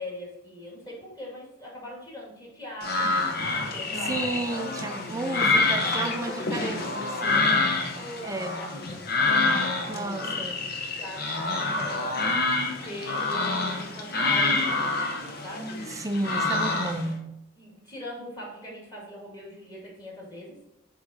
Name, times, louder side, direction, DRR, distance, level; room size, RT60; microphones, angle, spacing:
voice 1, 0.0-3.2 3.5-4.5 5.8-6.6 7.0-7.5 7.9-10.5 11.0-16.0 17.6-20.6, equal, 20° left, -4 dB, 2.2 m, -41 dB
sound 1, 2.8-17.1, left 3 dB, 50° left, 0.9 m, -27 dB
voice 2, 4.0-7.6 8.2-8.6 9.9-10.6 15.9-17.4, right 2 dB, 15° right, 9 dB, 0.4 m, -32 dB
8.1 x 3.8 x 4.3 m, 0.85 s
head